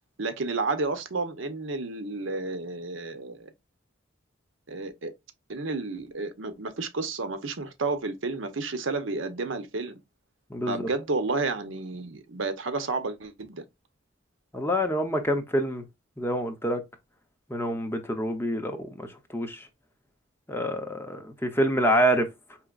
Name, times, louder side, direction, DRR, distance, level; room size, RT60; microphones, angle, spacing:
voice 1, 0.2-3.5 4.7-5.1 5.5-10.0 10.7-13.6, right 3 dB, 85° right, 0.8 m, -31 dB
voice 2, 10.5-10.9 14.5-15.8 16.2-16.8 17.5-19.6 20.5-22.3, equal, 10° left, 0.7 m, -27 dB
4.9 x 2.9 x 2.4 m
head